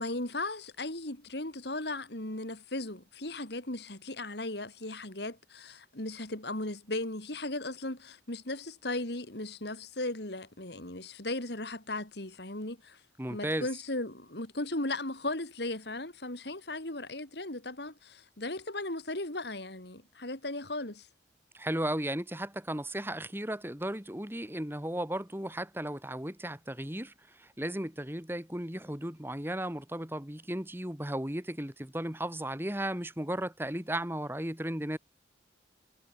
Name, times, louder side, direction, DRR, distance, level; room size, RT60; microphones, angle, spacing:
voice 1, 0.0-13.0 13.3-21.1, left 2 dB, 60° left, 3.3 m, -37 dB
voice 2, 13.2-13.7 21.5-35.0, right 1 dB, 10° right, 2.4 m, -35 dB
head